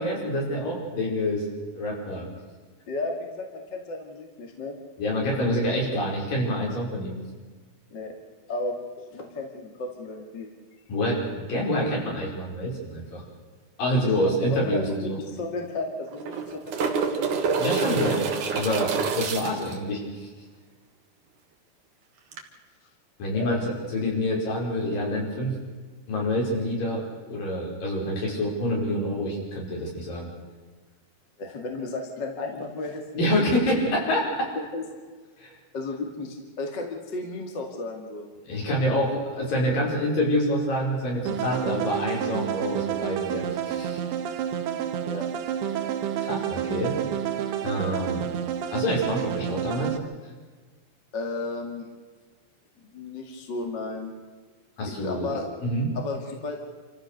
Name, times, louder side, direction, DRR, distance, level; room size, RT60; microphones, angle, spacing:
voice 1, 0.0-1.4 1.7-2.3 5.0-7.1 10.9-13.2 13.8-15.2 17.6-18.2 18.5-20.3 23.2-25.5 26.1-30.3 33.1-34.5 35.4-35.5 38.5-44.0 46.2-46.9 47.6-48.3 48.7-50.0 54.8-55.9, equal, 60° left, -2 dB, 6.7 m, -27 dB
voice 2, 2.9-4.8 7.9-8.1 8.5-8.8 9.1-10.5 14.0-14.8 15.2-17.3 19.6-19.7 23.3-23.5 31.4-33.4 34.5-34.8 35.7-38.3 45.0-45.2 51.1-51.9 52.8-54.1 54.8-55.4 55.9-56.7, left 2 dB, 35° left, 2 dB, 2.3 m, -34 dB
sound 1, 14.6-14.7 14.9-15.0 16.0-19.8 22.3-22.4, right 5 dB, 60° right, 3.0 m, -27 dB
sound 2, 41.3-50.0, right 9 dB, 90° right, 3.2 m, -29 dB
27.5 x 14.5 x 6.7 m, 1.4 s
omnidirectional pair, 4.5 m